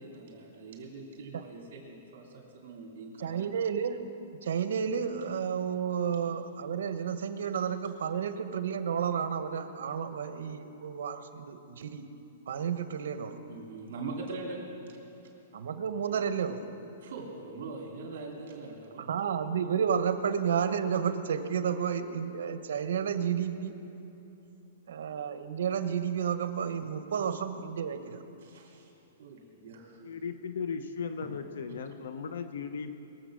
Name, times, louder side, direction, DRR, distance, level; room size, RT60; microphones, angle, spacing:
voice 1, 0.0-3.5 13.5-14.6 14.9-15.0 17.0-19.1 28.4-28.9 29.2-30.0, right 3 dB, 55° right, -1 dB, 2.9 m, -42 dB
voice 2, 3.2-4.0 4.4-12.1 12.5-13.4 15.5-16.6 19.0-23.7 24.9-28.2, right 7 dB, 70° right, 10 dB, 1.0 m, -31 dB
voice 3, 30.0-32.9, left 6 dB, 75° left, 9 dB, 0.7 m, -37 dB
22.0 x 8.0 x 6.3 m, 2.9 s
hypercardioid pair, 175°, 0 cm